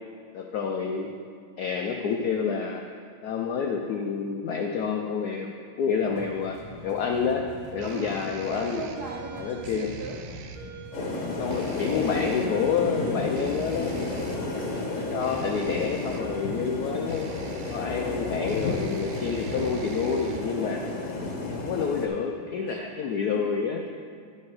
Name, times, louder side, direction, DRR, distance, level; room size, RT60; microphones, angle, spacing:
voice 1, 0.3-1.1 1.6-2.8 3.2-6.6 6.8-7.4 7.7-8.9 9.4-9.9 11.4-14.1 14.9-17.3 17.7-20.8 21.5-23.8, left 6 dB, 80° left, 2 dB, 0.8 m, -28 dB
sound 1, 6.0-15.8, equal, 30° right, 1.3 m, -45 dB
sound 2, 6.2-20.7, right 7 dB, 90° right, 1.5 m, -43 dB
voice 2, 7.8-10.3 20.8-21.2 22.7-23.5, right 4 dB, 70° right, 1 dB, 0.9 m, -40 dB
sound 3, 10.9-22.1, left 3 dB, 45° left, 1.2 m, -32 dB
11.0 x 5.6 x 4.7 m, 2.2 s
omnidirectional pair, 2.3 m